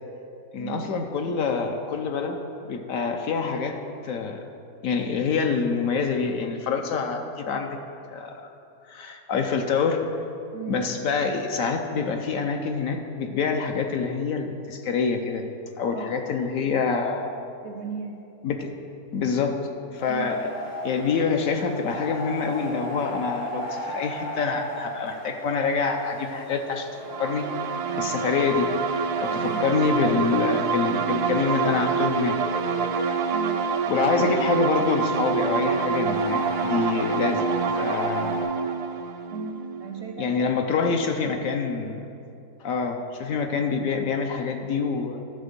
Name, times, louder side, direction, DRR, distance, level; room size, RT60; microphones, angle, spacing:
voice 1, 0.5-2.4 2.6-3.8 4.0-4.4 4.8-7.7 8.1-8.5 8.9-10.0 10.7-15.4 15.8-17.3 18.4-18.7 19.1-19.6 19.9-20.5 20.8-26.9 27.2-27.5 27.9-32.4 32.9-33.1 33.9-37.5 37.8-38.5 40.2-42.1 42.6-45.2, left 5 dB, 70° left, 4 dB, 1.0 m, -26 dB
voice 2, 17.6-18.2 20.1-20.3 29.3-29.7 33.3-33.6 39.3-40.5 41.2-41.3, right 5 dB, 65° right, 3 dB, 0.7 m, -37 dB
sound 1, 19.9-38.4, equal, 85° left, 3.2 m, -37 dB
sound 2, 27.0-40.5, right 6 dB, 80° right, 1.1 m, -27 dB
12.0 x 4.3 x 6.7 m, 2.6 s
omnidirectional pair, 1.7 m